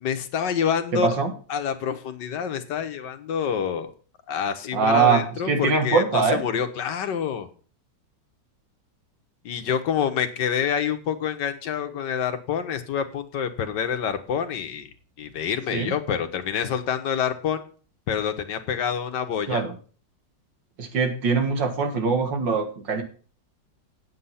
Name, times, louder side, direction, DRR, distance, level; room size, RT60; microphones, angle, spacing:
voice 1, 0.0-1.1 1.5-3.9 4.3-7.5 9.4-14.9 15.2-17.6 18.1-19.6, left 8 dB, 70° left, 8 dB, 1.7 m, -27 dB
voice 2, 0.9-1.3 4.7-6.4 15.7-15.9 19.5-19.7 20.8-23.0, right 5 dB, 75° right, 6 dB, 2.4 m, -22 dB
8.4 x 8.3 x 5.6 m, 0.40 s
omnidirectional pair, 2.0 m